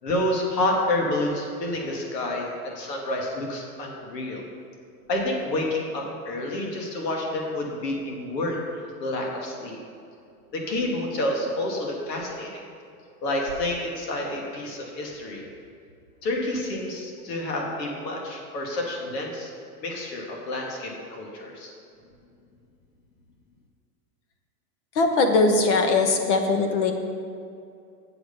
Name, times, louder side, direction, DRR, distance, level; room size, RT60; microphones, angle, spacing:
voice 1, 0.0-4.4 5.1-9.8 10.5-12.6 13.2-15.5 16.2-19.5 19.8-21.7, left 1 dB, 80° left, -1 dB, 2.4 m, -29 dB
voice 2, 25.0-26.9, left 3 dB, 45° left, 5 dB, 1.1 m, -20 dB
8.0 x 7.9 x 5.4 m, 2.4 s
supercardioid pair, 165°, 49 cm